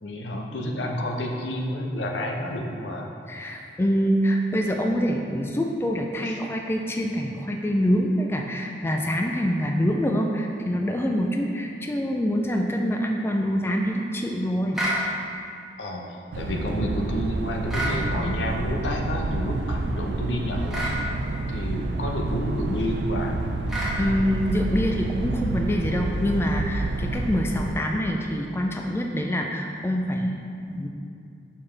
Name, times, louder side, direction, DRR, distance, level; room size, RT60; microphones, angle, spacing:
voice 1, 0.0-3.1 15.8-16.0 16.3-20.9 21.5-23.4, left 1 dB, 75° left, 1 dB, 0.8 m, -29 dB
voice 2, 3.3-14.8 24.0-30.9, equal, 15° left, 1 dB, 0.3 m, -25 dB
sound 1, 14.7-15.0 17.7-18.0 20.7-21.0 23.7-24.0, right 1 dB, 5° right, 1.2 m, -27 dB
sound 2, 16.3-27.8, right 2 dB, 70° right, 0.4 m, -29 dB
6.8 x 5.5 x 3.3 m, 2.5 s
head